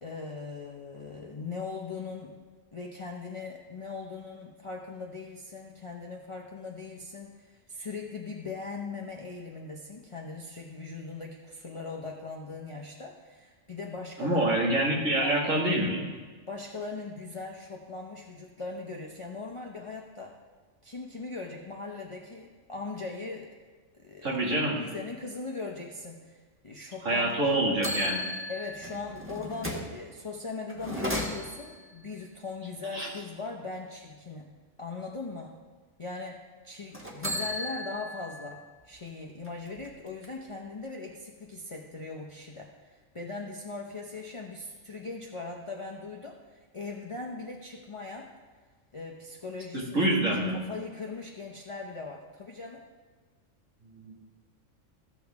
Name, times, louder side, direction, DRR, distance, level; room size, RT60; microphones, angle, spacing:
voice 1, 0.0-2.4 2.7-14.4 15.2-15.4 16.5-20.3 20.8-23.5 24.0-24.3 24.8-26.4 26.6-27.6 28.5-35.6 36.0-48.3 48.9-52.8, left 3 dB, 30° left, -1 dB, 0.7 m, -40 dB
voice 2, 14.2-16.0 24.2-24.8 27.0-28.2 32.9-33.1 49.7-50.5 53.9-54.1, right 1 dB, 90° right, -4 dB, 2.5 m, -26 dB
sound 1, 27.2-27.3 27.8-30.0 30.7-31.8 36.9-38.5 38.9-39.0 39.4-40.5, left 1 dB, 10° right, 1.2 m, -35 dB
14.5 x 7.0 x 3.5 m, 1.4 s
omnidirectional pair, 1.3 m